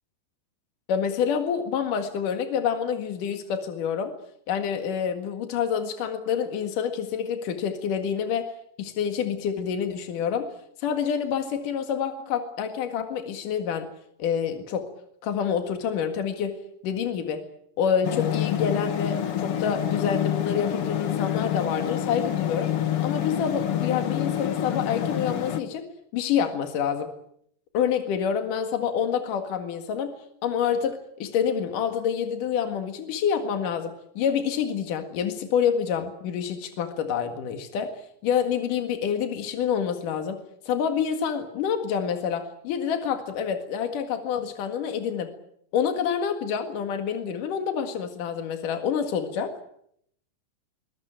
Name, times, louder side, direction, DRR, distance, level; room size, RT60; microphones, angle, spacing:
voice 1, 0.9-4.1 4.5-8.5 8.8-10.5 10.8-13.9 14.2-14.9 15.2-17.4 17.8-22.7 23.0-25.9 26.1-27.1 27.7-30.1 30.4-38.0 38.2-40.4 40.7-45.3 45.7-49.5, left 7 dB, 75° left, 6 dB, 3.5 m, -27 dB
sound 1, 18.0-25.6, left 10 dB, 55° left, 1.9 m, -27 dB
22.5 x 21.0 x 9.0 m, 0.71 s
omnidirectional pair, 3.8 m